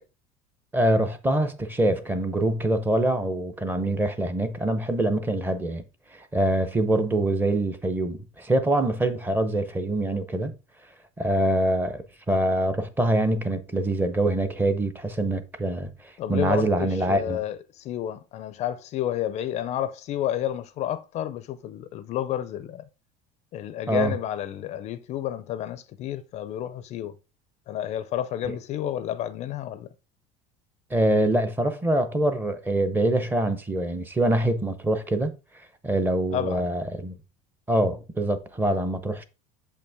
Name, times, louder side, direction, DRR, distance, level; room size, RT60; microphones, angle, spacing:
voice 1, 0.7-5.8 6.1-10.6 11.2-17.4 23.9-24.1 30.9-35.3 35.8-37.2 37.7-39.2, right 1 dB, 10° right, 0.7 m, -24 dB
voice 2, 16.2-22.8 23.5-27.2 27.7-29.9 36.3-36.7, left 11 dB, 40° left, 0.5 m, -30 dB
7.0 x 5.4 x 3.4 m
cardioid pair, 145°, 17 cm